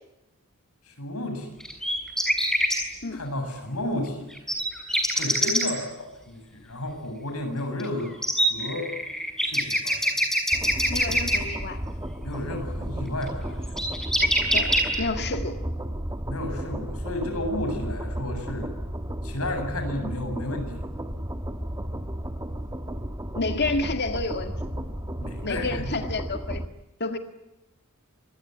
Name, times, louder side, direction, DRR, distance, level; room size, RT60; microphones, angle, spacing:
voice 1, 0.8-1.6 3.1-4.3 5.1-8.9 9.4-10.2 12.2-13.8 16.3-18.7 19.2-20.8 25.2-26.0, left 1 dB, 75° left, 6 dB, 7.9 m, -32 dB
sound 1, 1.6-2.8 4.3-5.7 7.8-7.9 8.2-11.4 13.2-13.3 13.6-15.0, equal, ahead, 6.3 m, -23 dB
sound 2, 10.5-26.7, equal, 15° right, 1.7 m, -33 dB
voice 2, 10.9-11.8 14.5-15.6 23.4-24.5 25.4-26.6 27.0-27.2, left 3 dB, 50° left, 7 dB, 1.9 m, -29 dB
26.5 x 21.5 x 9.5 m, 0.93 s
head